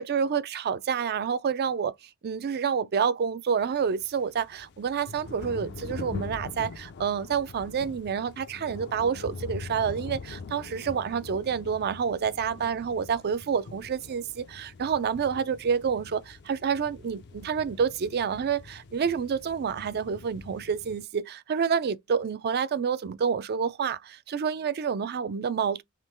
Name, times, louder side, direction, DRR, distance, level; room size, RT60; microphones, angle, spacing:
voice 1, 0.0-1.9 2.2-25.8, right 6 dB, 45° right, 0.4 m, -28 dB
sound 1, 3.6-21.0, left 4 dB, 50° left, 0.5 m, -43 dB
3.7 x 2.9 x 4.3 m
head